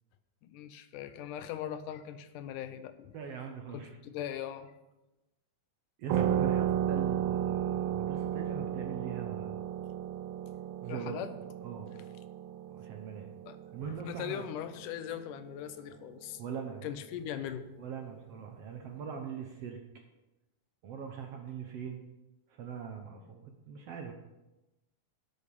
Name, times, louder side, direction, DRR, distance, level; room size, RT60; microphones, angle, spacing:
voice 1, 0.4-3.2 3.7-4.7 10.9-11.3 13.5-16.4 16.8-17.7, left 10 dB, 85° left, 10 dB, 2.2 m, -40 dB
voice 2, 3.1-4.0 6.0-9.7 10.8-11.2 11.6-12.0 12.7-13.3 13.7-14.5 16.4-16.9 17.8-19.8 20.8-22.1 22.5-24.1, right 6 dB, 65° right, 3 dB, 1.6 m, -41 dB
sound 1, 6.1-15.3, right 10 dB, 90° right, 1.5 m, -34 dB
12.0 x 6.8 x 5.3 m, 0.99 s
omnidirectional pair, 3.7 m